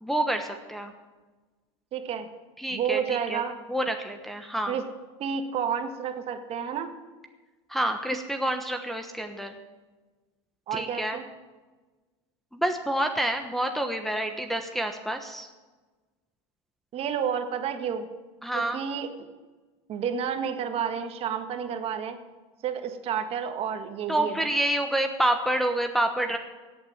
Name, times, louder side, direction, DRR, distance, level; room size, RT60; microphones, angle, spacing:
voice 1, 0.0-0.9 2.6-3.4 3.7-4.8 7.7-9.6 10.7-11.2 12.5-15.5 18.4-18.8 24.1-26.4, right 1 dB, ahead, 3 dB, 1.1 m, -28 dB
voice 2, 1.9-2.3 2.7-3.5 4.7-4.8 5.2-6.9 10.7-11.2 16.9-18.1 18.5-19.1 19.9-22.2 22.6-24.5, right 7 dB, 40° right, 7 dB, 1.7 m, -30 dB
16.0 x 8.8 x 7.4 m, 1.3 s
supercardioid pair, 120°, 15 cm